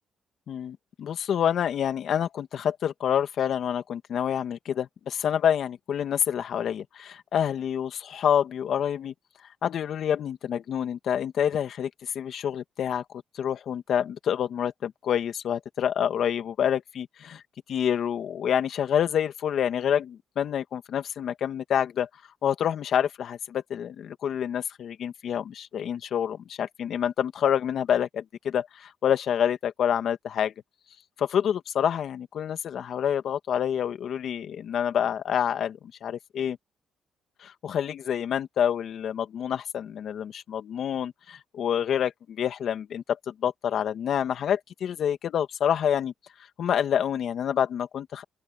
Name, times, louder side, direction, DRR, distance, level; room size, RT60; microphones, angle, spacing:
voice 1, 0.5-9.1 9.6-13.0 13.3-17.4 17.7-22.1 22.4-30.5 31.2-36.6 37.4-46.1 46.6-48.2, left 9 dB, 65° left, 2.0 m, -27 dB
open air
cardioid pair, 90°, 0 cm